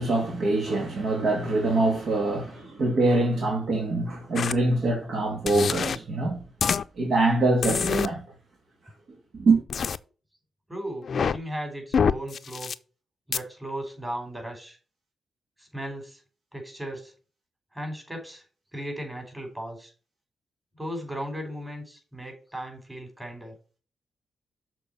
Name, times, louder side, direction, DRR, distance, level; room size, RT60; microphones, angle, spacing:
voice 1, 0.0-6.4 7.0-8.2 9.3-9.6, right 2 dB, 70° right, 2.1 m, -24 dB
sound 1, 4.4-4.5 5.5-6.0 6.6-6.8 7.6-8.1 9.7-10.0 11.0-11.4 11.9-12.7 13.3-13.4, left 6 dB, 65° left, 0.4 m, -25 dB
voice 2, 10.7-12.7 13.3-14.8 15.6-16.2 16.5-17.1 17.7-18.4 18.7-19.9 20.8-23.5, right 1 dB, 15° right, 4.9 m, -36 dB
7.0 x 4.4 x 6.8 m
cardioid pair, 60°, 0 cm